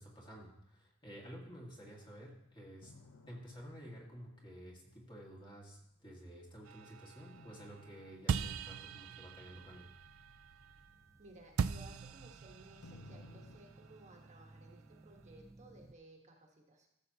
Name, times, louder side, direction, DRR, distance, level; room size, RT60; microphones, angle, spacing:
voice 1, 0.0-2.9 3.3-9.9, equal, 25° left, -2 dB, 1.9 m, -52 dB
sound 1, 2.8-6.5 7.3-12.3 12.8-13.6, left 3 dB, 85° left, 0.8 m, -62 dB
sound 2, 6.7-11.2 11.6-15.0, right 6 dB, 85° right, 0.4 m, -42 dB
sound 3, 8.6-15.9, right 2 dB, 15° right, 0.3 m, -60 dB
voice 2, 11.2-16.9, right 1 dB, 35° right, 0 dB, 1.4 m, -59 dB
13.5 x 6.9 x 2.9 m, 0.86 s
head